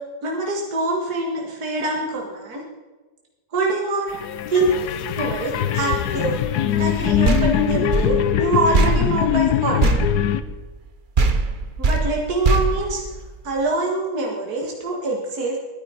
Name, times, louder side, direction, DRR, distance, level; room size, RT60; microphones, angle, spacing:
voice 1, 0.2-2.6 3.5-4.2 4.5-4.7 5.2-9.8 11.8-13.0 13.4-15.6, right 2 dB, 65° right, 0 dB, 2.3 m, -24 dB
sound 1, 4.1-10.4, left 10 dB, 75° left, 1.3 m, -22 dB
sound 2, 7.2-10.9 11.2-13.6, right 3 dB, 35° right, 0.9 m, -22 dB
22.0 x 9.9 x 4.4 m, 1.2 s
omnidirectional pair, 1.8 m